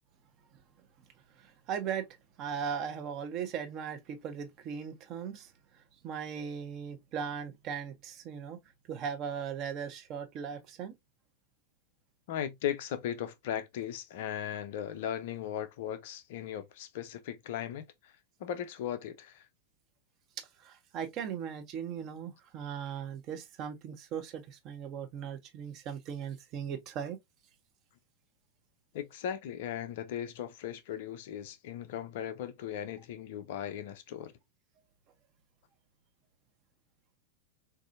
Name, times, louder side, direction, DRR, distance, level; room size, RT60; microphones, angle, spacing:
voice 1, 1.4-2.1 2.4-5.5 6.0-8.6 8.9-10.9 20.4-27.2, right 7 dB, 35° right, 0.8 m, -38 dB
voice 2, 12.3-18.1 18.4-19.4 28.9-34.3, left 10 dB, 50° left, 0.5 m, -37 dB
4.0 x 2.6 x 2.5 m
figure-of-eight pair, 90°, 0 cm